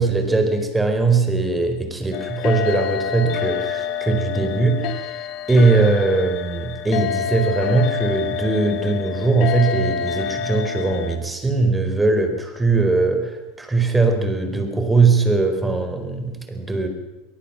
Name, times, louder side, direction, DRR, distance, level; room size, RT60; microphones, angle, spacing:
voice 1, 0.0-16.9, right 3 dB, 10° right, 6 dB, 4.7 m, -20 dB
sound 1, 2.1-11.2, left 8 dB, 50° left, 2.2 m, -27 dB
23.0 x 17.5 x 7.6 m, 1.1 s
hypercardioid pair, 90°, 0 cm